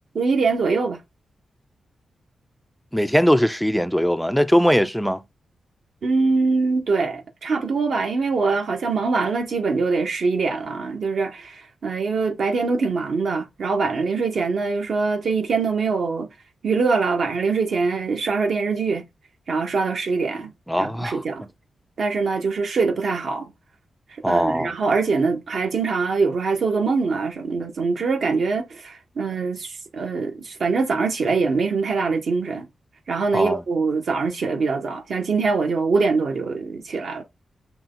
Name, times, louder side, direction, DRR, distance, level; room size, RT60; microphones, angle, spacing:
voice 1, 0.1-1.0 6.0-16.3 16.6-19.0 19.5-20.5 20.8-21.4 22.0-23.5 24.3-32.7 33.1-37.2, right 4 dB, 60° right, 1.2 m, -23 dB
voice 2, 2.9-5.2 20.7-21.2 24.2-24.7 33.3-33.6, equal, ahead, 0.4 m, -20 dB
5.9 x 2.3 x 3.8 m
wide cardioid pair, 135°, 0 cm